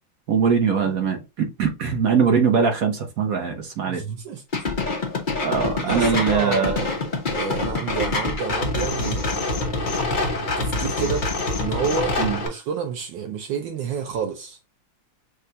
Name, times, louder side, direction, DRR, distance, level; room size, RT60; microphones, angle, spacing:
voice 1, 0.3-4.0 5.4-6.7 12.2-12.4, right 6 dB, 55° right, 1.2 m, -21 dB
voice 2, 3.9-4.4 5.8-7.0 7.3-11.3 11.6-14.6, right 6 dB, 75° right, 1.4 m, -30 dB
sound 1, 4.5-12.5, left 3 dB, 35° left, 0.9 m, -25 dB
6.5 x 2.4 x 2.8 m
omnidirectional pair, 2.1 m